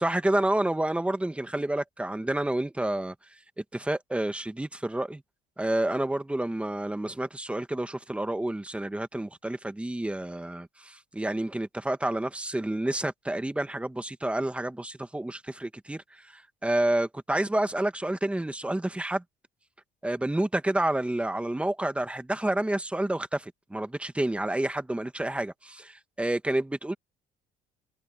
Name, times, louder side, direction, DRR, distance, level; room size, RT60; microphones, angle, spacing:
voice 1, 0.0-3.1 3.6-5.2 5.6-19.2 20.0-26.9, right 1 dB, 5° right, 1.5 m, -29 dB
cardioid pair, 140°, 19 cm